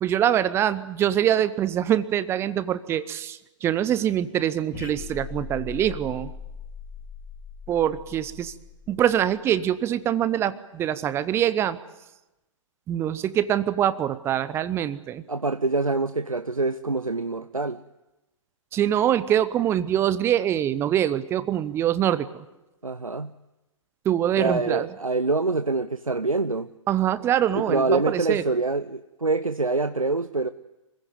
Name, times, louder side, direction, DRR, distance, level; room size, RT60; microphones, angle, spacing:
voice 1, 0.0-6.3 7.7-8.5 8.9-11.8 12.9-15.2 18.7-22.4 24.0-24.9 26.9-28.4, right 10 dB, 15° right, 16 dB, 0.8 m, -24 dB
sound 1, 4.7-9.4, left 6 dB, 25° left, 5.0 m, -39 dB
voice 2, 15.3-17.8 22.8-23.3 24.4-26.7 27.5-30.5, right 3 dB, 85° right, 12 dB, 0.7 m, -25 dB
26.0 x 16.0 x 9.4 m, 1.0 s
figure-of-eight pair, 120°, 17 cm